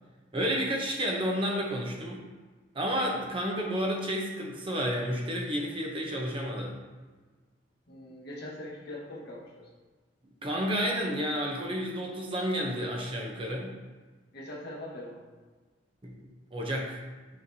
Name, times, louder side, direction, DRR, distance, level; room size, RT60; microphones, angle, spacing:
voice 1, 0.3-2.2 2.7-6.8 10.4-13.7 16.0-17.0, equal, 30° right, -1 dB, 0.8 m, -31 dB
voice 2, 7.9-9.7 14.3-15.2, left 1 dB, 60° left, -4 dB, 1.3 m, -42 dB
6.8 x 5.1 x 2.7 m, 1.4 s
head